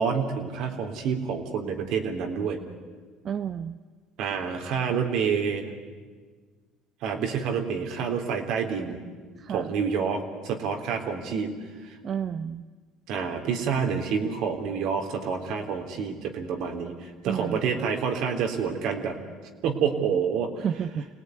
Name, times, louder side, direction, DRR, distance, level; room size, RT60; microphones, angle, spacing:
voice 1, 0.0-2.6 4.2-5.7 7.0-9.0 9.5-11.5 11.8-12.0 13.1-19.2 19.6-20.7, right 6 dB, 70° right, 4 dB, 3.6 m, -28 dB
voice 2, 3.2-3.8 9.4-9.7 12.0-12.6 17.2-17.6 20.6-21.1, right 8 dB, 45° right, 10 dB, 0.8 m, -31 dB
26.5 x 18.5 x 9.6 m, 1.5 s
supercardioid pair, 95°, 0 cm